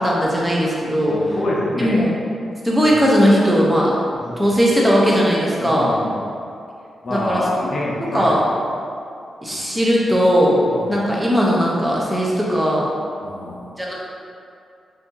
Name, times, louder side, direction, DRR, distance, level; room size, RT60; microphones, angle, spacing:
voice 1, 0.0-1.2 1.8-2.1 2.6-3.9 4.4-5.9 7.1-7.4 8.1-8.4 9.4-10.6 10.9-12.9 13.8-13.9, equal, 10° right, -4 dB, 0.5 m, -18 dB
voice 2, 1.0-2.0 4.1-4.5 5.6-6.2 7.0-8.4 9.5-9.7 10.7-11.1 13.2-13.7, left 1 dB, 40° left, -4 dB, 0.6 m, -26 dB
2.6 x 2.6 x 3.7 m, 2.5 s
wide cardioid pair, 145°, 0 cm